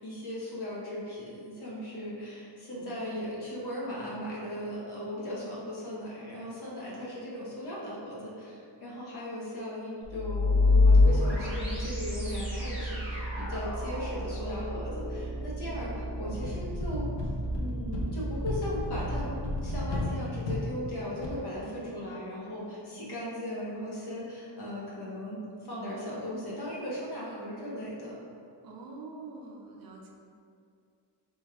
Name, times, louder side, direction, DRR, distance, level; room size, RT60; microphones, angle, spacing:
voice 1, 0.0-17.1 17.5-28.2, left 1 dB, 65° left, -7 dB, 1.1 m, -37 dB
voice 2, 2.7-3.3 28.6-30.1, right 3 dB, 55° right, 0 dB, 0.5 m, -46 dB
sound 1, 10.0-20.0, left 2 dB, 5° right, 1.4 m, -28 dB
sound 2, 16.3-21.3, left 2 dB, 80° left, 0.7 m, -35 dB
4.3 x 3.1 x 2.3 m, 2.4 s
wide cardioid pair, 170°, 43 cm